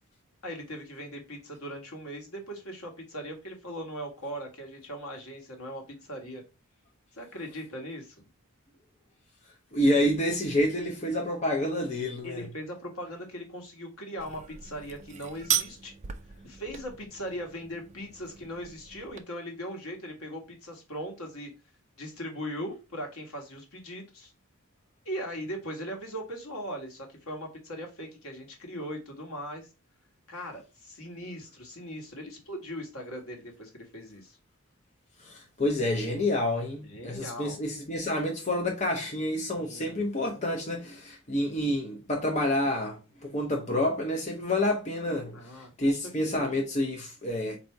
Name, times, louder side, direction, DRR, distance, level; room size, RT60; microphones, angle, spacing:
voice 1, 0.4-6.4 7.1-8.2 12.2-15.9 16.4-21.5 22.0-24.3 25.0-29.7 30.3-34.4 36.8-37.6 39.5-40.4 45.3-46.5, equal, 75° left, 1.5 m, -39 dB
voice 2, 9.7-12.4 35.2-45.4 45.8-47.6, left 1 dB, 30° left, 0.7 m, -28 dB
sound 1, 14.2-19.2, right 9 dB, 30° right, 0.3 m, -36 dB
4.2 x 2.7 x 4.5 m
head